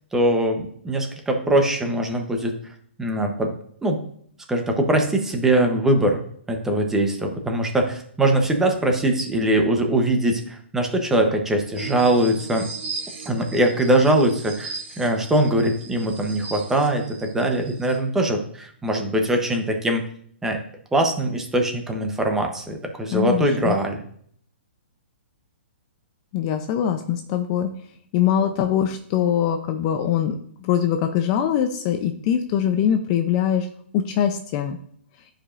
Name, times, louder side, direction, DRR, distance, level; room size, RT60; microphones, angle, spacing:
voice 1, 0.1-2.6 3.0-3.5 3.8-4.0 4.5-12.7 13.3-20.1 20.4-20.6 20.9-24.0, right 1 dB, 5° right, 4 dB, 0.8 m, -22 dB
sound 1, 11.7-18.0, right 4 dB, 60° right, 1.9 m, -37 dB
voice 2, 23.1-23.8 26.3-27.7 28.1-33.7 33.9-34.8, left 9 dB, 30° left, 7 dB, 0.5 m, -22 dB
11.0 x 5.0 x 2.5 m, 0.62 s
hypercardioid pair, 160°, 6 cm